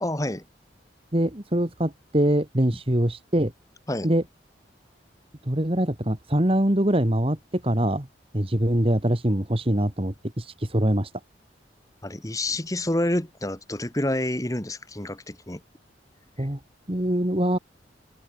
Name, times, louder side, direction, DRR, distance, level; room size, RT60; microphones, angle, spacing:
voice 1, 0.0-0.4 3.9-4.1 12.0-15.6 16.4-16.5, left 1 dB, 20° left, 1.7 m, -28 dB
voice 2, 1.1-3.5 4.0-4.2 5.4-8.1 8.3-11.1 16.4-16.6 16.9-17.6, right 1 dB, 30° right, 2.1 m, -23 dB
open air
head